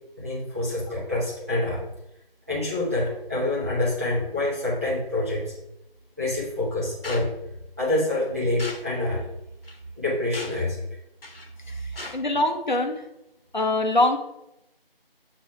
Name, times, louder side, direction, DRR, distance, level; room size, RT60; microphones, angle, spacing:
voice 1, 0.2-1.8 2.5-5.5 6.2-7.3 7.8-9.2 10.0-10.8 11.9-12.1, left 2 dB, 15° right, -8 dB, 1.3 m, -26 dB
sound 1, 7.0-7.3 8.6-8.8 9.6-9.8 10.3-10.6 11.2-11.5 12.0-12.2, left 2 dB, 70° left, 1.3 m, -37 dB
voice 2, 11.7-13.0 13.5-14.2, left 2 dB, 50° left, 4 dB, 0.9 m, -24 dB
6.9 x 3.0 x 5.7 m, 0.88 s
figure-of-eight pair, 175°, 30 cm